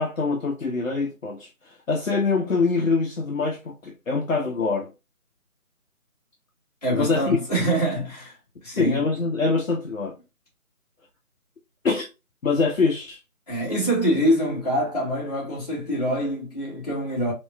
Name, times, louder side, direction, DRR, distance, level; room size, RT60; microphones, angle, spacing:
voice 1, 0.0-4.9 6.9-7.4 8.7-10.1 11.8-12.1 12.4-13.2, left 4 dB, 65° left, 0.8 m, -24 dB
voice 2, 6.8-9.1 13.5-17.3, equal, 25° left, 1.5 m, -25 dB
3.0 x 3.0 x 2.2 m
figure-of-eight pair, 165°, 44 cm